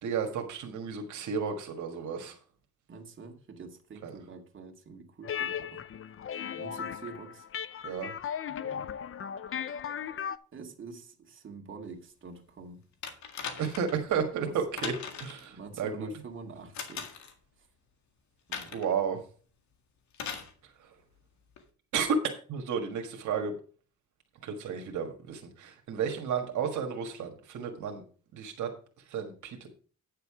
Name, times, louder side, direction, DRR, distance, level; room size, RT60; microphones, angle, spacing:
voice 1, 0.0-2.4 4.0-4.1 7.8-8.1 8.6-8.8 13.6-14.9 15.2-16.1 18.7-19.2 20.8-20.9 21.9-22.2 22.5-23.6 24.4-28.0 28.3-28.7 29.1-29.7, right 7 dB, 75° right, 1.6 m, -32 dB
voice 2, 2.9-5.8 6.5-7.5 10.5-12.8 14.4-14.5 15.5-17.1 18.5-18.8, right 4 dB, 40° right, 2.0 m, -46 dB
sound 1, 5.2-10.4, left 8 dB, 45° left, 0.6 m, -36 dB
sound 2, 13.0-14.0 14.8-15.5 16.7-17.3 18.5-18.9 20.1-20.5 21.6-21.7, left 6 dB, 65° left, 1.9 m, -39 dB
9.3 x 6.7 x 4.9 m
cardioid pair, 90°, 30 cm